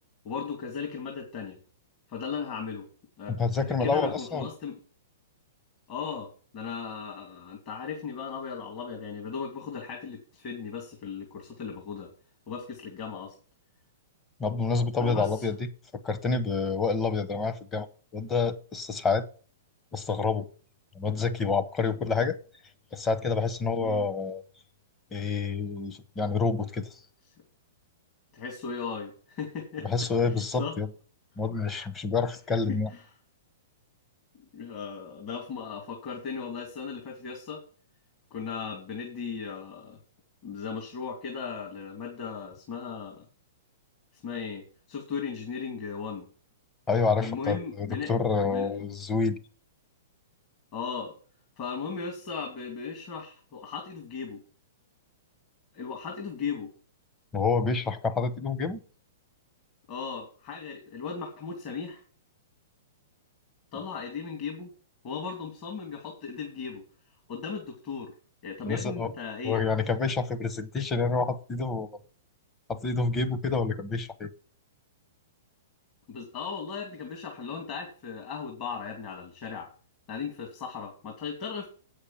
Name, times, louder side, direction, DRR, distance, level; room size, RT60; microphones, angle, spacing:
voice 1, 0.2-1.6 2.1-2.9 3.2-3.4 3.6-4.8 5.9-12.1 12.5-13.4 15.0-15.5 23.8-24.1 28.3-29.9 30.2-30.8 32.7-33.0 34.3-37.6 38.3-40.0 40.4-43.2 44.1-46.3 47.2-48.2 48.5-48.9 50.7-51.1 51.6-54.4 55.7-56.7 59.9-62.0 63.7-64.7 65.0-66.8 67.3-68.1 68.4-69.6 76.1-79.7 80.1-81.7, left 6 dB, 40° left, 2.6 m, -37 dB
voice 2, 3.4-4.5 14.4-15.6 16.0-17.9 18.1-19.3 19.9-20.5 20.9-22.4 22.9-24.4 25.1-26.9 29.8-30.9 31.4-32.9 46.9-49.4 57.3-58.8 68.6-69.1 69.4-71.9 72.7-74.3, left 4 dB, 20° left, 1.0 m, -28 dB
8.3 x 6.6 x 7.4 m
hypercardioid pair, 135°, 0 cm